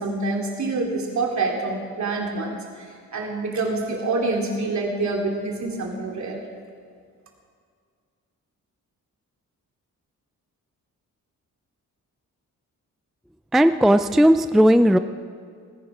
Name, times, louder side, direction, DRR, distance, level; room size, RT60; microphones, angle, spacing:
voice 1, 0.0-2.6 3.1-6.4, right 3 dB, 60° right, 0 dB, 2.7 m, -26 dB
voice 2, 13.5-15.0, equal, ahead, 10 dB, 0.3 m, -16 dB
19.0 x 10.5 x 4.9 m, 2.1 s
cardioid pair, 90°, 33 cm